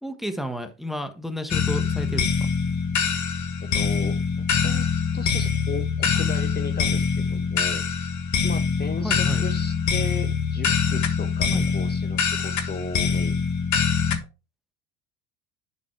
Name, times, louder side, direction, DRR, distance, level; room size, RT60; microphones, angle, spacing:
voice 1, 0.0-2.5 9.0-9.5 11.5-11.7, equal, ahead, 8 dB, 1.4 m, -32 dB
sound 1, 1.5-14.2, left 6 dB, 45° left, 1.8 m, -24 dB
voice 2, 3.6-4.8 5.1-7.8 8.4-13.4, left 4 dB, 25° left, 8 dB, 1.2 m, -36 dB
11.0 x 4.1 x 4.6 m, 0.28 s
supercardioid pair, 95°, 41 cm